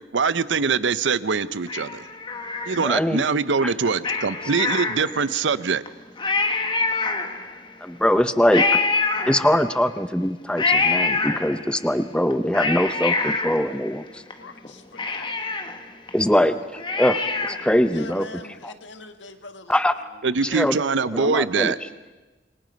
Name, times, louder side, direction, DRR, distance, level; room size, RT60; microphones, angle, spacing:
voice 1, 0.1-2.0 2.7-5.8 20.2-21.8, right 5 dB, 80° right, 0.7 m, -23 dB
Cat, 1.7-3.2 4.0-5.4 5.9-6.0 6.2-7.7 8.5-9.9 10.6-11.8 12.3-14.3 14.6-14.7 15.0-17.8 18.1-18.2, left 3 dB, 25° left, 1.4 m, -25 dB
voice 2, 2.7-3.2 3.6-3.7 7.8-8.7 9.3-14.2 16.1-16.6 16.9-17.2 17.6-18.2 19.7-19.9 20.5-20.8 21.1-21.7, equal, 5° left, 0.6 m, -22 dB
voice 3, 14.4-15.4 17.9-19.8 20.1-20.2, left 3 dB, 80° left, 1.7 m, -42 dB
27.0 x 23.5 x 5.3 m
head